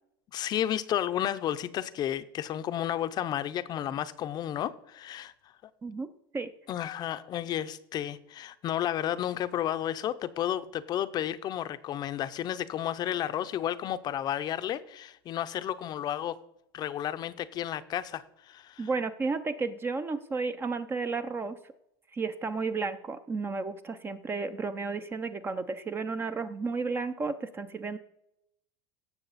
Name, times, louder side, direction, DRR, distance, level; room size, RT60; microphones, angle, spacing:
voice 1, 0.3-5.3 6.7-16.4 16.7-18.9, left 11 dB, 35° left, 0.6 m, -32 dB
voice 2, 18.8-21.6 22.1-28.0, right 4 dB, 20° right, 0.5 m, -32 dB
17.0 x 6.9 x 4.1 m
supercardioid pair, 135°, 12 cm